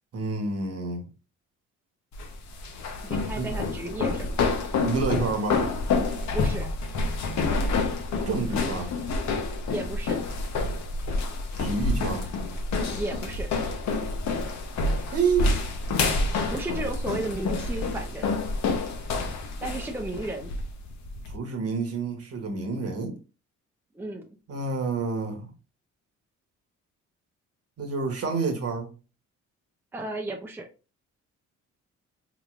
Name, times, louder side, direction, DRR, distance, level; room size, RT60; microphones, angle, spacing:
voice 1, 0.1-1.1 3.4-3.5 4.8-5.7 8.3-8.9 11.6-12.3 15.1-15.6 21.3-23.1 24.5-25.5 27.8-28.9, right 4 dB, 50° right, 1.1 m, -28 dB
sound 1, 2.1-21.4, left 3 dB, 65° left, 0.8 m, -28 dB
voice 2, 3.0-4.4 6.3-6.7 9.7-10.2 13.0-13.5 16.5-18.3 19.6-20.5 23.9-24.3 29.9-30.7, right 2 dB, 5° right, 0.6 m, -33 dB
3.8 x 3.1 x 2.4 m
cardioid pair, 90°, 30 cm